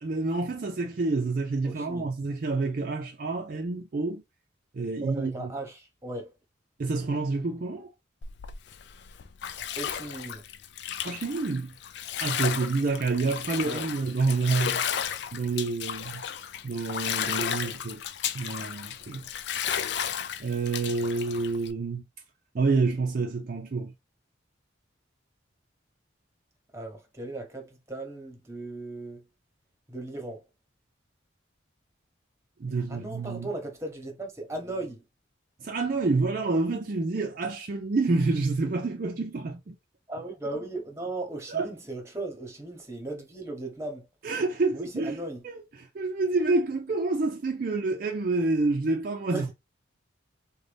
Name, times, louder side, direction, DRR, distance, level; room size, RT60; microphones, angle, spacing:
voice 1, 0.0-4.2 4.7-5.5 6.8-7.9 11.0-11.7 12.2-16.2 16.6-18.0 18.3-19.3 20.4-22.0 22.5-23.9 32.6-33.5 35.6-39.8 41.5-41.7 44.2-49.5, right 3 dB, 45° right, 0.4 m, -28 dB
voice 2, 1.6-2.1 5.0-6.3 9.8-10.4 13.6-13.8 26.7-29.2 29.9-30.4 32.9-35.0 40.1-44.1 44.7-45.4 49.3-49.5, right 2 dB, 15° right, 0.9 m, -37 dB
Bathtub (filling or washing), 8.2-21.7, left 9 dB, 60° left, 0.4 m, -33 dB
3.9 x 2.2 x 3.3 m
head